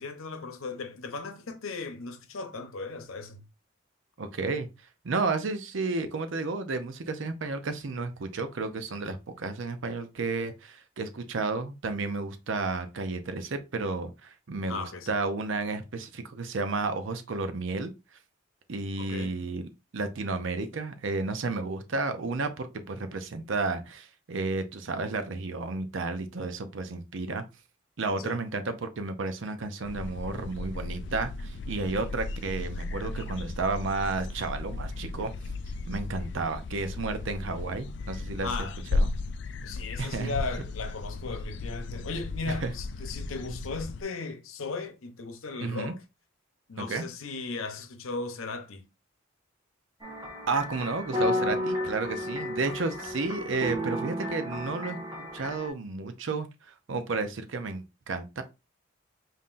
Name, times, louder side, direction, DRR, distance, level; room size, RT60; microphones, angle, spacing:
voice 1, 0.0-3.4 14.7-15.1 19.0-19.3 28.2-28.4 38.4-38.8 39.6-46.0 46.7-48.9, left 4 dB, 85° left, 0.8 m, -37 dB
voice 2, 4.2-4.7 5.0-17.9 18.7-27.4 28.0-35.3 35.9-38.5 38.9-39.1 40.0-40.4 42.5-42.7 45.6-45.9 46.8-47.0 50.5-55.0 55.3-58.4, right 3 dB, 70° right, 0.6 m, -32 dB
sound 1, 29.8-44.0, left 2 dB, 55° left, 0.3 m, -35 dB
sound 2, 50.0-55.7, left 1 dB, 15° right, 1.0 m, -32 dB
5.5 x 2.7 x 2.5 m
head